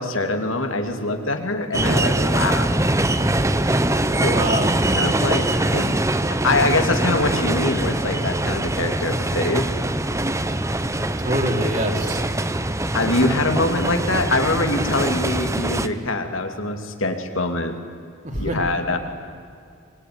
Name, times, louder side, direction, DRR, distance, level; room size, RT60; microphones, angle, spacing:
voice 1, 0.0-2.7 4.2-4.4 4.9-5.9 6.4-9.7 12.9-17.7 18.3-19.0, left 2 dB, 70° left, 5 dB, 2.8 m, -23 dB
sound 1, 1.7-15.9, right 1 dB, 15° right, 0.9 m, -23 dB
voice 2, 4.2-4.8 11.2-12.2 18.2-18.6, right 1 dB, 35° right, 2 dB, 3.4 m, -25 dB
25.0 x 23.5 x 9.7 m, 2.3 s
head